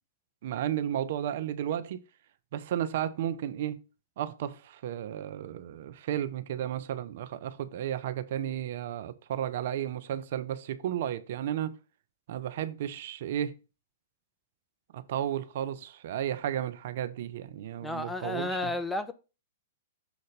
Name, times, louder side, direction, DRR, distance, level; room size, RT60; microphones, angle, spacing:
voice 1, 0.4-2.0 2.5-3.8 4.2-11.7 12.3-13.6 14.9-18.7, right 10 dB, 60° right, 0.6 m, -33 dB
voice 2, 17.8-19.1, left 2 dB, 5° left, 0.7 m, -32 dB
7.1 x 3.9 x 5.1 m
hypercardioid pair, 115°, 0 cm